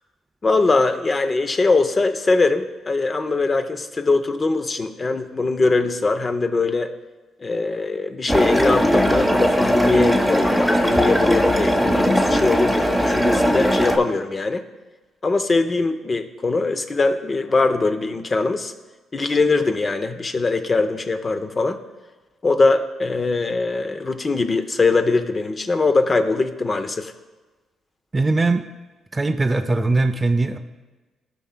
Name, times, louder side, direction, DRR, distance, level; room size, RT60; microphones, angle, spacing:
voice 1, 0.4-6.9 7.4-14.6 15.2-18.7 19.1-21.8 22.4-27.1, left 3 dB, 30° left, 8 dB, 0.6 m, -21 dB
sound 1, 8.3-14.0, equal, 5° left, 0.9 m, -19 dB
voice 2, 28.1-28.7 29.1-30.6, right 3 dB, 20° right, 9 dB, 0.4 m, -20 dB
15.0 x 5.7 x 2.2 m, 1.2 s
cardioid pair, 90°, 0 cm